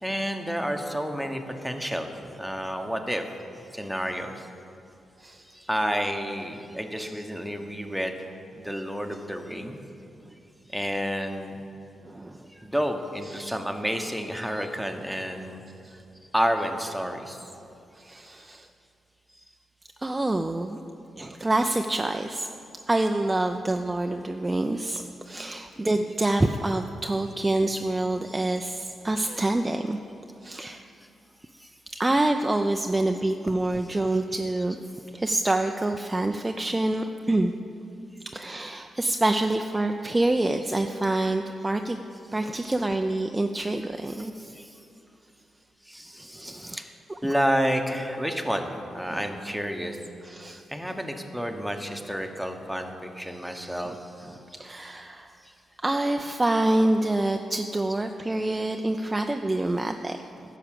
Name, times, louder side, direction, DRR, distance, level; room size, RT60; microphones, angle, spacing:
voice 1, 0.0-2.1 2.4-3.2 3.7-4.5 5.5-8.3 8.6-9.8 10.7-11.6 12.5-15.6 16.3-17.5 29.3-29.4 30.5-30.7 31.6-31.7 33.9-34.2 34.6-34.7 41.2-41.3 42.9-43.0 43.6-43.7 44.1-44.8 45.9-46.8 47.2-50.0 50.7-54.4, equal, ahead, 4 dB, 1.0 m, -30 dB
voice 2, 12.0-12.5 13.3-13.6 15.8-15.9 17.9-18.7 20.0-20.8 21.2-22.5 22.9-30.0 30.4-30.9 31.9-34.8 35.1-37.5 38.3-42.0 42.3-44.3 46.4-46.8 47.1-47.3 49.1-49.3 50.2-50.6 53.9-54.0 54.3-55.3 55.8-60.6, right 2 dB, 20° right, 5 dB, 0.4 m, -27 dB
11.0 x 4.9 x 7.5 m, 2.7 s
cardioid pair, 65°, 0 cm